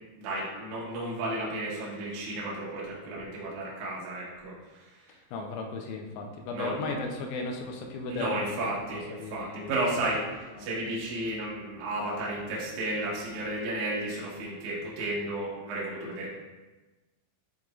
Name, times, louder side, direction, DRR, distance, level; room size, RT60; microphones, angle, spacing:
voice 1, 0.2-4.9 6.5-6.8 8.1-16.3, right 2 dB, 90° right, -6 dB, 1.7 m, -33 dB
voice 2, 5.3-8.7 9.1-10.0 10.6-10.7, left 3 dB, 85° left, 2 dB, 3.4 m, -36 dB
10.5 x 4.1 x 2.4 m, 1.2 s
omnidirectional pair, 5.9 m